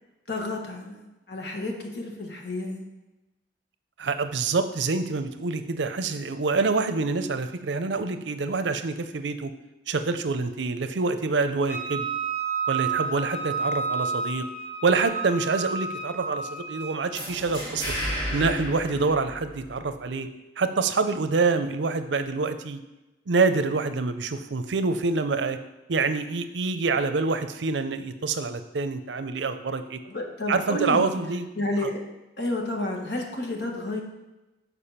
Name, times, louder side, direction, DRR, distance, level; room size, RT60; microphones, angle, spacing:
voice 1, 0.3-2.8 30.1-31.2 31.6-32.0 32.4-34.0, left 1 dB, 75° left, 1 dB, 1.3 m, -30 dB
voice 2, 4.0-9.5 9.9-12.1 12.7-14.4 14.8-17.9 18.3-20.3 20.6-22.8 23.3-25.6 25.9-30.0 30.5-31.5 31.8-31.9, right 4 dB, 85° right, 9 dB, 0.6 m, -26 dB
Wind instrument woodwind instrument, 11.7-17.0, right 5 dB, 45° left, 2.0 m, -30 dB
sound 1, 17.1-19.9, equal, 30° left, 3.0 m, -32 dB
6.9 x 4.8 x 5.7 m, 1.0 s
head